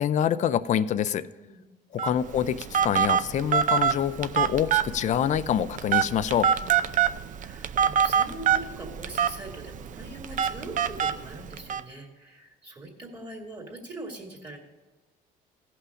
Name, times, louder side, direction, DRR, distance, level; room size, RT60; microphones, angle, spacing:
voice 1, 0.0-1.3 1.9-6.5, left 9 dB, 45° left, 13 dB, 0.5 m, -26 dB
Telephone, 2.0-11.8, right 8 dB, 50° right, 0.6 m, -26 dB
voice 2, 6.6-14.6, right 2 dB, 30° right, -1 dB, 2.3 m, -42 dB
16.0 x 5.8 x 4.9 m, 1.3 s
cardioid pair, 110°, 17 cm